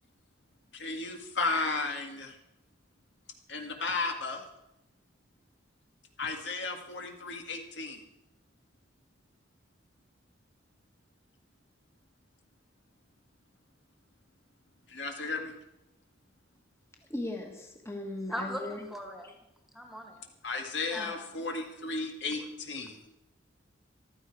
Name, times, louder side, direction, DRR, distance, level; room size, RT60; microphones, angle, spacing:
voice 1, 0.7-2.3 3.5-4.5 6.2-8.0 14.9-15.5 20.4-23.0, left 3 dB, 70° left, 3 dB, 2.0 m, -34 dB
voice 2, 17.1-18.9 21.0-21.1, left 1 dB, 15° left, 2 dB, 1.6 m, -38 dB
voice 3, 18.3-19.4 19.7-20.3 20.9-21.3 22.3-22.5 22.8-23.1, equal, ahead, 3 dB, 1.7 m, -40 dB
14.5 x 13.0 x 4.9 m, 0.89 s
head